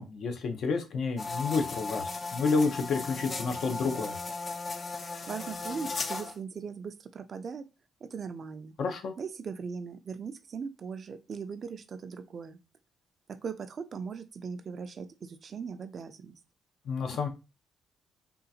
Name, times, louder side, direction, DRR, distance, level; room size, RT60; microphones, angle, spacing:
voice 1, 0.0-4.2 8.8-9.1 16.8-17.3, left 4 dB, 65° left, 5 dB, 0.7 m, -30 dB
sound 1, 1.2-6.4, left 3 dB, 35° left, 0.5 m, -36 dB
voice 2, 5.3-7.6 8.0-8.7 9.2-12.6 13.3-16.4, right 6 dB, 50° right, 10 dB, 0.4 m, -39 dB
3.7 x 2.4 x 2.7 m, 0.28 s
cardioid pair, 90°, 0 cm